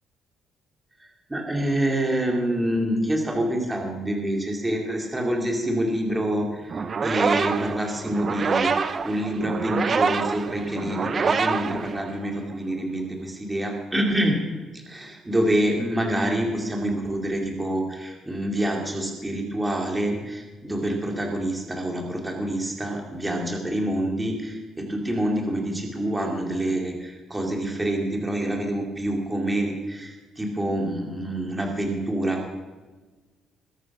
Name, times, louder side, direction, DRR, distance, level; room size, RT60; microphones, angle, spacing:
voice 1, 1.0-8.7 9.0-14.4 14.7-32.4, right 1 dB, 10° right, 1 dB, 2.7 m, -27 dB
sound 1, 6.7-12.5, right 5 dB, 30° right, 0.7 m, -26 dB
20.5 x 11.5 x 6.1 m, 1.3 s
cardioid pair, 170°, 0 cm